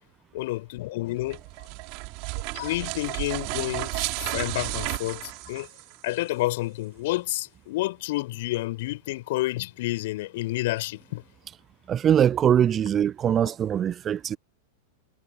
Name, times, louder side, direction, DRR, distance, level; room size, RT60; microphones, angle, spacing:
voice 1, 0.3-1.4 2.5-3.9 4.3-5.2 5.5-5.7 6.0-11.2, left 18 dB, 50° left, 4.8 m, -29 dB
sound 1, 1.2-6.2, right 33 dB, 45° right, 4.5 m, -33 dB
voice 2, 11.9-14.4, right 9 dB, 25° right, 0.8 m, -22 dB
figure-of-eight pair, 90°, 0 cm